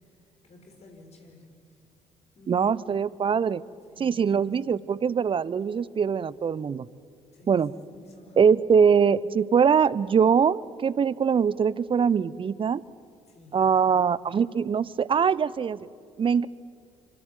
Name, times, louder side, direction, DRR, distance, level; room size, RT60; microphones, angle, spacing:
voice 1, 0.4-1.6 2.3-3.5 3.9-4.9 7.3-8.4 13.3-13.6, left 2 dB, 45° left, 3 dB, 6.3 m, -52 dB
voice 2, 2.5-3.6 4.0-6.8 7.5-7.7 8.4-12.8 13.5-15.8 16.2-16.5, right 6 dB, 35° right, 20 dB, 0.7 m, -22 dB
26.0 x 25.0 x 8.4 m, 2.3 s
figure-of-eight pair, 45°, 15 cm